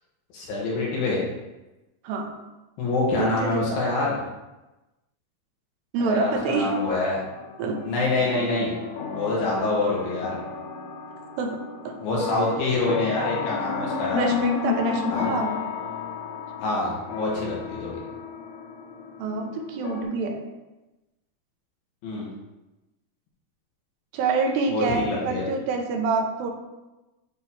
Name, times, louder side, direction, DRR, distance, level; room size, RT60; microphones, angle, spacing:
voice 1, 0.3-1.2 2.8-4.2 6.0-7.2 7.8-8.7 9.1-10.4 12.0-14.3 15.0-15.3 16.6-18.0 22.0-22.3 24.7-25.4, left 2 dB, 70° left, -4 dB, 2.9 m, -26 dB
voice 2, 3.2-3.8 5.9-6.7 7.6-7.8 11.4-11.6 11.9-12.0 14.2-15.5 19.2-20.4 24.1-26.5, right 4 dB, 85° right, 2 dB, 2.9 m, -26 dB
sound 1, 6.4-20.0, left 6 dB, 85° left, 2.7 m, -32 dB
8.8 x 3.0 x 4.1 m, 1.0 s
omnidirectional pair, 4.8 m